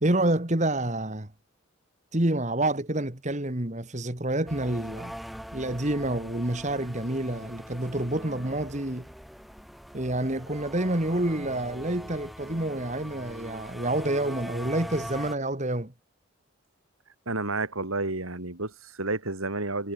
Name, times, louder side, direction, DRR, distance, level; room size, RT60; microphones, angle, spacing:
voice 1, 0.0-1.3 2.1-5.2 5.5-9.1 9.9-15.9, right 1 dB, 35° right, 2.0 m, -28 dB
sound 1, 4.5-15.4, equal, ahead, 3.6 m, -42 dB
voice 2, 17.3-19.9, right 2 dB, 85° right, 3.9 m, -30 dB
head